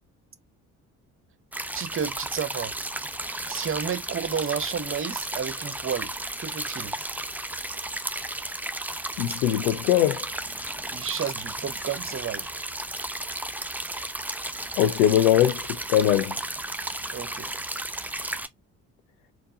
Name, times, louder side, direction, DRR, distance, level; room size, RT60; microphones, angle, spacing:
sound 1, 1.5-18.5, right 1 dB, 5° right, 0.6 m, -34 dB
voice 1, 1.7-2.7 3.5-6.9 10.9-12.5 17.1-17.5, right 7 dB, 30° right, 0.9 m, -31 dB
voice 2, 9.2-10.3 14.8-15.6 15.9-16.3, left 11 dB, 65° left, 0.6 m, -21 dB
4.5 x 4.1 x 2.3 m
figure-of-eight pair, 45°, 44 cm